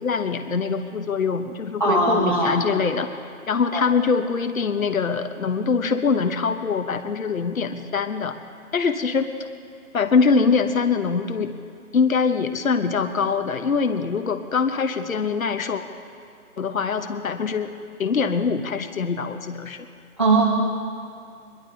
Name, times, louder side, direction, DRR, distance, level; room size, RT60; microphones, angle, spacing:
voice 1, 0.0-3.1 3.5-8.4 8.7-9.3 9.9-11.6 11.9-15.8 16.6-17.7 18.0-19.9, left 5 dB, 65° left, 8 dB, 1.0 m, -23 dB
voice 2, 1.8-2.6 3.7-3.8 20.2-20.4, right 2 dB, 20° right, -7 dB, 1.0 m, -19 dB
23.0 x 11.5 x 3.9 m, 2.3 s
hypercardioid pair, 175°, 44 cm